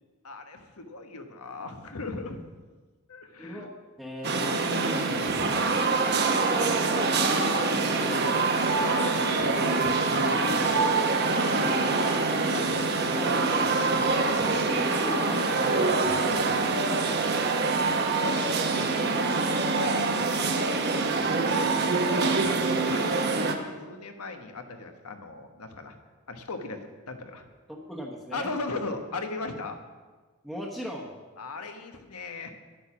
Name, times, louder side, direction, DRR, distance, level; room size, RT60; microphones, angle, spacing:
voice 1, 0.2-2.4 3.1-3.7 4.4-5.6 8.8-10.8 11.3-13.1 13.7-14.6 15.9-16.7 18.8-20.6 20.9-21.6 22.1-22.6 22.8-26.0 26.3-27.5 28.3-29.8 31.4-32.5, left 3 dB, 90° left, 6 dB, 1.2 m, -39 dB
voice 2, 3.4-3.7 4.0-4.5 6.0-8.8 10.5-10.8 13.1-13.7 14.4-16.3 17.4-17.6 21.3-21.5 27.7-28.5 30.4-31.1, equal, ahead, -3 dB, 1.0 m, -38 dB
sound 1, 4.2-23.5, right 3 dB, 45° right, 0.9 m, -25 dB
10.5 x 9.1 x 6.1 m, 1.3 s
head